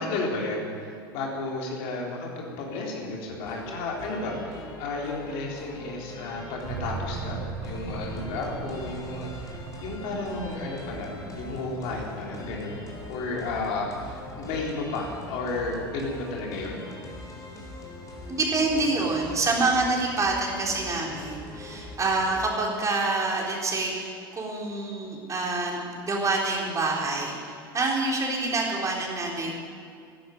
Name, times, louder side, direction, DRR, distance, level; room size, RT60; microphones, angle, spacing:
voice 1, 0.0-12.8 13.1-16.8, left 2 dB, 60° left, -1 dB, 3.6 m, -33 dB
sound 1, 3.4-22.6, left 2 dB, 30° left, 3.7 m, -42 dB
sound 2, 6.6-15.2 17.4-22.0, right 5 dB, 45° right, 4.3 m, -41 dB
voice 2, 18.3-29.5, right 3 dB, 25° right, -1 dB, 3.8 m, -27 dB
12.5 x 11.0 x 9.3 m, 2.3 s
hypercardioid pair, 80°, 12 cm